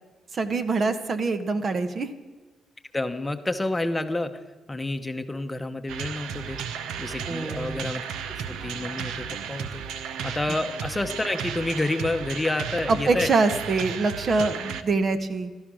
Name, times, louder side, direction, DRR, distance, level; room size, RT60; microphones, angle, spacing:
voice 1, 0.3-2.1 7.3-7.8 12.9-15.5, right 3 dB, 45° right, 10 dB, 1.3 m, -24 dB
voice 2, 2.9-4.3 4.7-6.6 7.0-8.0 8.6-9.8 10.2-13.3 14.3-14.5, left 2 dB, 15° left, 8 dB, 0.9 m, -29 dB
sound 1, 5.9-14.8, right 7 dB, 85° right, 0.9 m, -34 dB
16.0 x 12.5 x 6.4 m, 1.3 s
cardioid pair, 90°, 0 cm